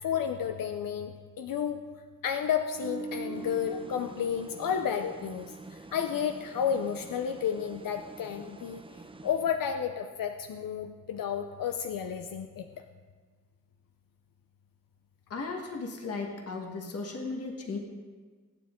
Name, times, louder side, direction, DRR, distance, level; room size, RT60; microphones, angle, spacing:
voice 1, 0.0-1.8 2.2-8.8 9.2-12.7, left 8 dB, 85° left, 6 dB, 0.8 m, -31 dB
sound 1, 2.7-6.0 6.3-6.6, right 4 dB, 65° right, 1.7 m, -43 dB
sound 2, 3.3-9.9, right 3 dB, 15° right, 0.5 m, -49 dB
voice 2, 15.3-17.8, left 3 dB, 45° left, 2 dB, 1.5 m, -36 dB
23.5 x 9.6 x 3.7 m, 1.5 s
wide cardioid pair, 175°, 33 cm